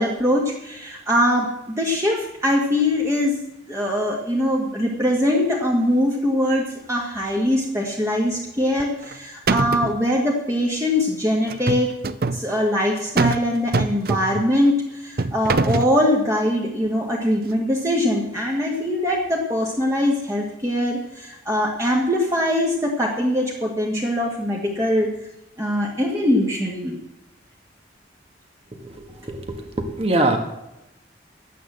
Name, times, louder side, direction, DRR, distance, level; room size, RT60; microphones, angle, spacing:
voice 1, 0.0-3.3 3.7-11.9 12.3-25.1 25.6-27.0, left 1 dB, 15° right, -3 dB, 1.8 m, -22 dB
sound 1, 8.8-9.2 9.5-10.0 11.5-12.4 13.2-13.5 13.7-14.5 15.2-15.9, right 3 dB, 55° right, 0.6 m, -22 dB
voice 2, 28.8-30.4, right 2 dB, 30° right, 4 dB, 1.6 m, -23 dB
11.5 x 9.3 x 7.6 m, 0.90 s
head